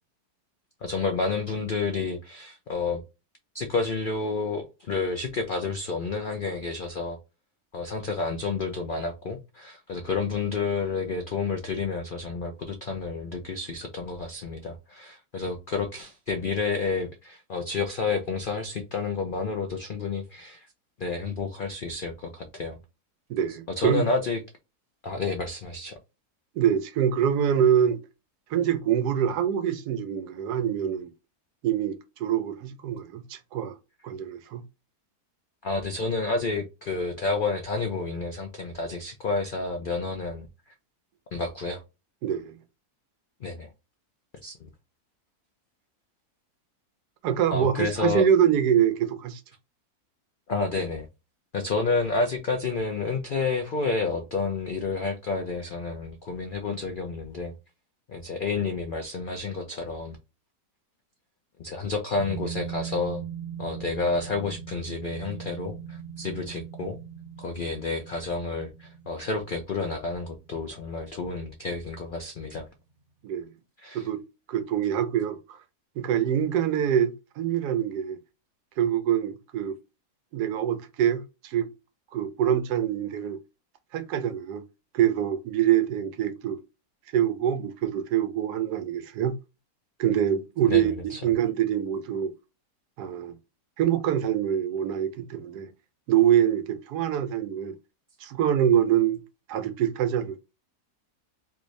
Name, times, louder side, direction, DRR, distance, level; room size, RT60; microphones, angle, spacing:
voice 1, 0.8-3.0 3.5-7.2 7.7-20.7 21.0-22.8 23.8-24.4 25.0-26.0 35.6-40.5 41.3-41.8 43.4-43.7 44.4-44.7 47.5-48.3 50.5-51.1 51.5-57.5 58.1-60.2 61.6-63.2 63.6-67.0 67.4-72.7 73.8-74.1 90.7-91.2, left 4 dB, 85° left, 0.4 m, -30 dB
voice 2, 23.3-24.1 26.6-28.0 28.5-31.1 31.6-33.7 34.0-34.6 42.2-42.6 47.2-49.4 73.2-73.5 73.9-74.2 74.5-75.4 76.0-78.2 78.8-79.8 80.3-81.7 82.1-83.4 83.9-84.6 84.9-86.6 87.1-89.3 90.0-90.9 91.2-92.3 93.0-93.3 93.8-95.7 96.1-97.8 98.2-99.2 99.5-100.4, right 9 dB, 90° right, 1.2 m, -25 dB
sound 1, 62.2-71.3 71.6-71.7, right 8 dB, 65° right, 1.0 m, -40 dB
3.4 x 2.6 x 3.1 m
omnidirectional pair, 1.7 m